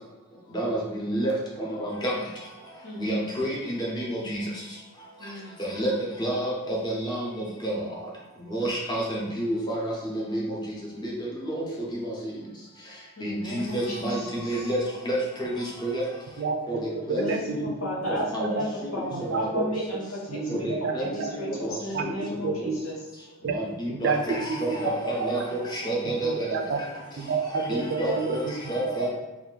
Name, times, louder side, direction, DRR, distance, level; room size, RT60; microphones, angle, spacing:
voice 1, 0.5-2.1 3.0-4.4 5.6-5.9 6.2-7.8 8.5-10.8 11.0-11.1 11.4-11.6 11.9-12.3 13.2-14.8 15.0-16.0 16.7-16.8 17.1-17.7 18.3-18.6 18.8-19.0 19.3-19.6 20.5-21.7 22.0-22.1 23.5-26.5 27.5-28.4 28.7-29.1, right 1 dB, 20° left, -4 dB, 0.7 m, -29 dB
voice 2, 5.2-5.5 13.2-14.7 17.1-17.4 17.8-18.7 18.9-23.0, left 1 dB, 80° left, -4 dB, 1.0 m, -34 dB
voice 3, 16.4-17.7 18.0-18.2 18.6-18.7 19.1-19.4 20.3-21.3 21.9-22.1 22.4-22.8 23.4-23.6 23.9-24.2 24.5-24.8 25.2-25.3 26.2-26.8 27.2-28.6, right 5 dB, 55° right, 5 dB, 0.4 m, -29 dB
2.7 x 2.4 x 3.8 m, 1.1 s
head